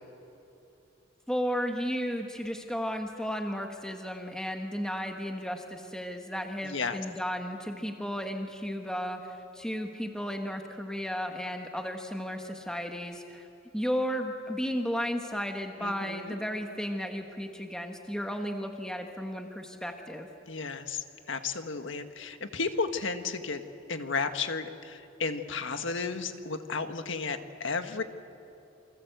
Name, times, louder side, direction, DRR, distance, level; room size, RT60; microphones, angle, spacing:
voice 1, 1.3-13.5 13.7-20.3, equal, 5° left, 3 dB, 1.4 m, -34 dB
voice 2, 6.6-7.0 15.8-16.3 20.5-23.6 23.9-28.0, left 4 dB, 70° left, 7 dB, 1.6 m, -33 dB
28.5 x 25.5 x 8.1 m, 2.8 s
head